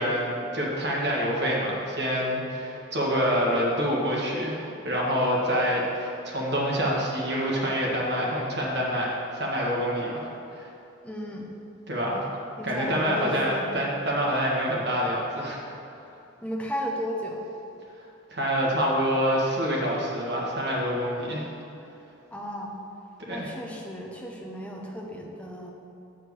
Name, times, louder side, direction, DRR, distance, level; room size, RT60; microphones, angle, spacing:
voice 1, 0.0-10.3 10.5-10.7 11.9-12.2 12.6-15.6 18.3-21.5 23.3-23.5, equal, 55° right, -4 dB, 1.6 m, -26 dB
voice 2, 11.0-11.5 12.6-13.7 16.4-17.4 22.3-22.7 23.3-25.7, equal, 5° left, -1 dB, 0.7 m, -34 dB
7.1 x 4.7 x 6.2 m, 2.8 s
head